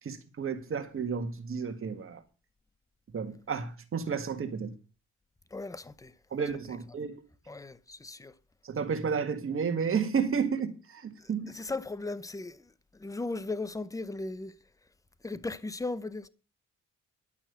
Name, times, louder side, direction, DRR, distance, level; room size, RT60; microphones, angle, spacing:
voice 1, 0.0-2.2 3.1-4.7 6.3-7.2 8.6-11.6, right 6 dB, 45° right, 1.8 m, -32 dB
voice 2, 5.5-6.1 7.5-8.4 11.2-14.6 15.2-16.3, left 3 dB, 10° left, 0.7 m, -37 dB
11.5 x 6.0 x 8.1 m
cardioid pair, 90°, 30 cm